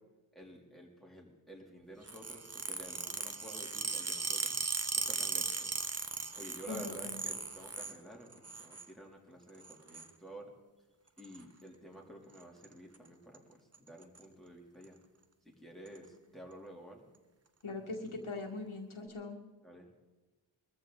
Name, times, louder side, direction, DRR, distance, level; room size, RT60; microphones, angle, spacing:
voice 1, 0.3-4.6 4.9-5.7 6.1-10.5 11.2-15.0 15.4-17.1 19.6-19.9, right 1 dB, ahead, -1 dB, 3.1 m, -51 dB
sound 1, 2.1-8.0 8.3-8.9 9.6-10.1 11.2-11.4 12.4-12.7 12.9-13.1 13.3-13.4 13.7-14.2 14.8-14.9 15.9-16.0, right 4 dB, 30° right, 1.0 m, -37 dB
voice 2, 6.7-7.2 17.6-19.4, left 3 dB, 75° left, 1 dB, 1.9 m, -41 dB
22.0 x 14.0 x 4.0 m, 1.2 s
wide cardioid pair, 75°, 49 cm